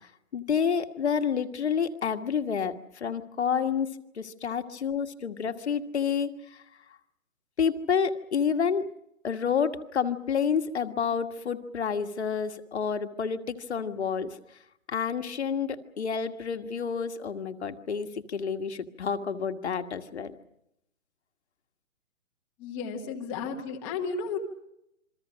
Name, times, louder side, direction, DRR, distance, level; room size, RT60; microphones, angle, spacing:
voice 1, 0.3-3.9 4.1-6.6 7.6-8.9 9.2-14.4 14.9-20.3, left 7 dB, 55° left, 7 dB, 1.7 m, -29 dB
voice 2, 22.6-24.4, left 5 dB, 10° left, 0 dB, 1.1 m, -33 dB
28.0 x 23.5 x 6.3 m, 0.81 s
hypercardioid pair, 165°, 40 cm